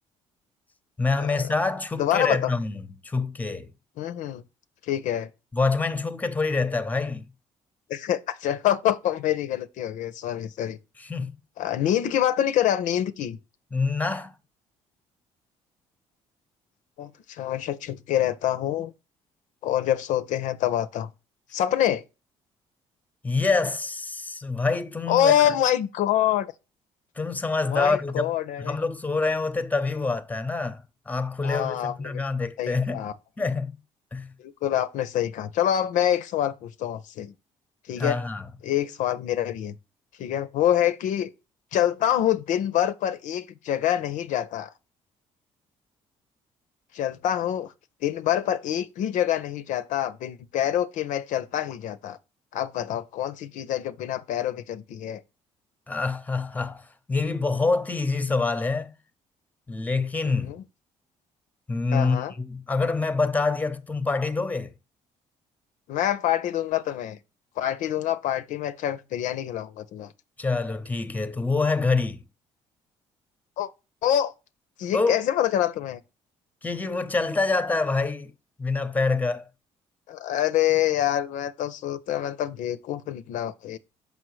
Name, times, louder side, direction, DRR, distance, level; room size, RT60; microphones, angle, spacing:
voice 1, 1.0-3.7 5.5-7.2 11.0-11.3 13.7-14.3 23.2-25.4 27.2-28.3 28.6-33.1 33.4-33.7 34.1-34.3 38.0-38.5 55.9-58.9 59.7-60.5 61.7-64.7 70.4-72.2 74.9-75.2 76.6-78.3 78.6-79.5, left 3 dB, 10° left, 0.6 m, -26 dB
voice 2, 2.0-2.5 4.0-4.4 4.9-5.3 7.9-10.8 11.6-13.4 17.0-18.9 19.6-21.1 21.5-22.0 25.1-26.5 27.7-28.8 31.4-32.2 32.6-33.1 34.4-37.3 37.9-38.2 38.6-39.7 40.2-41.3 41.7-44.7 46.9-47.7 48.0-52.2 52.5-55.2 60.4-60.6 61.9-62.3 65.9-67.2 67.6-70.1 73.6-73.7 74.0-74.3 74.8-76.0 80.1-83.8, left 11 dB, 70° left, 0.4 m, -26 dB
6.2 x 5.3 x 3.1 m
supercardioid pair, 65°, 14 cm